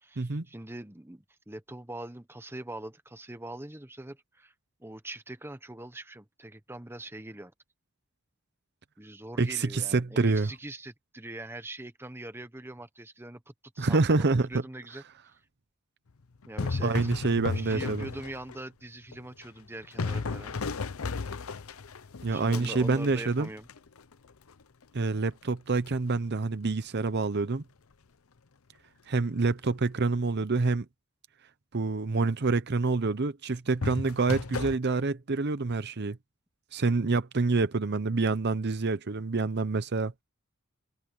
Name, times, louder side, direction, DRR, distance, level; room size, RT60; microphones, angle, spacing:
voice 1, 0.0-4.5 4.8-7.5 9.0-15.0 16.5-17.1 17.5-20.6 22.2-23.7, right 1 dB, 10° right, 1.2 m, -42 dB
voice 2, 9.4-10.5 13.8-14.6 16.8-18.1 22.2-23.5 24.9-27.6 29.1-30.9 31.7-36.2 36.7-40.1, right 3 dB, 50° right, 0.8 m, -27 dB
sound 1, 16.4-18.6 19.1-24.1 25.9-26.1 33.8-34.8, left 4 dB, 80° left, 0.7 m, -34 dB
head